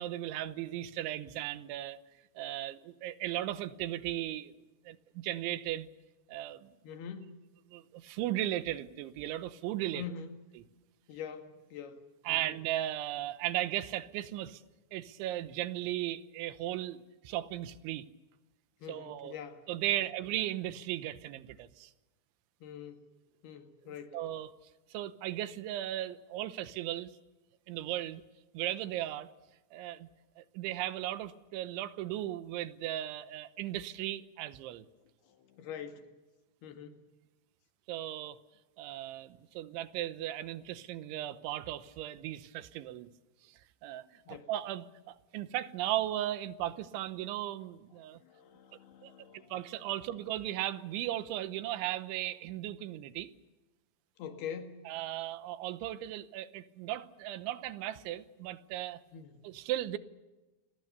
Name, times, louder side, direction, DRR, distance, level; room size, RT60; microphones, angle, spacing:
voice 1, 0.0-2.0 2.4-4.5 4.9-5.9 6.3-6.7 7.7-10.0 12.3-14.6 14.9-18.1 18.9-19.3 19.7-21.9 24.1-24.5 24.9-27.1 27.7-28.2 28.5-29.3 29.7-30.1 30.4-34.9 37.9-38.4 38.8-43.1 43.5-48.2 49.0-49.1 49.5-53.3 54.9-59.0 59.4-60.0, right 13 dB, 85° right, 13 dB, 3.4 m, -36 dB
voice 2, 6.8-7.4 9.9-10.4 11.1-12.6 18.8-19.7 22.6-23.1 23.4-24.2 35.2-36.1 36.6-37.0 44.3-44.5 48.2-49.6 54.2-54.8 59.1-59.4, left 7 dB, 65° left, 7 dB, 3.7 m, -44 dB
29.5 x 21.0 x 6.8 m, 1.1 s
omnidirectional pair, 5.3 m